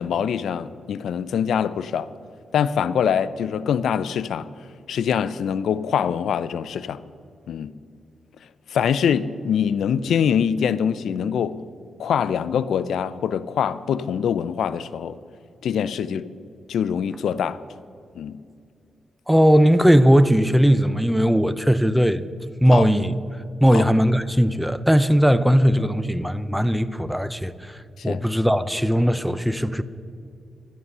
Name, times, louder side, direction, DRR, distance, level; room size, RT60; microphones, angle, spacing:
voice 1, 0.0-2.1 2.5-4.5 4.9-7.0 7.5-7.7 8.7-11.6 12.0-15.2 15.6-16.3 16.7-17.6 18.2-18.4 22.7-22.9 23.7-23.8 28.1-28.2, left 8 dB, 85° left, 0.4 m, -24 dB
voice 2, 19.3-22.2 22.6-23.1 23.6-29.8, equal, 5° right, 0.5 m, -18 dB
12.5 x 11.0 x 6.7 m
cardioid pair, 100°, 0 cm